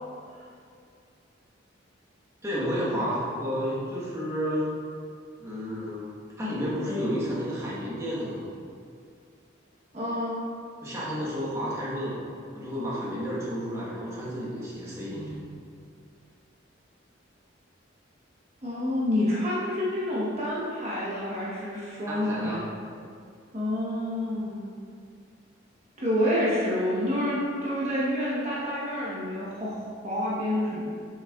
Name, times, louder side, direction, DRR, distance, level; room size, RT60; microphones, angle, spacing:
voice 1, 2.4-4.7 5.4-8.5 10.8-12.2 12.5-15.4 22.1-22.7, equal, 15° right, -8 dB, 1.2 m, -31 dB
voice 2, 9.9-10.4 15.1-15.5 18.6-22.6 23.5-24.7 26.0-31.0, left 1 dB, 35° right, -8 dB, 1.0 m, -28 dB
7.2 x 5.5 x 2.3 m, 2.3 s
head